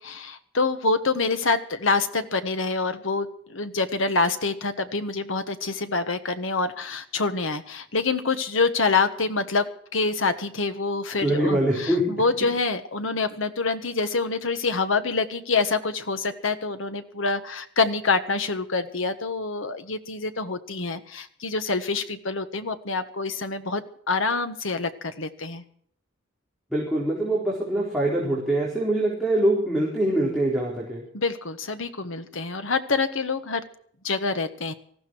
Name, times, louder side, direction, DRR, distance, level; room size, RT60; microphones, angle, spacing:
voice 1, 0.0-25.6 31.1-33.6 34.0-34.7, left 4 dB, 85° left, 9 dB, 1.4 m, -26 dB
voice 2, 11.2-12.0 26.7-31.0, right 1 dB, ahead, -6 dB, 4.1 m, -24 dB
19.0 x 15.0 x 4.6 m, 0.62 s
head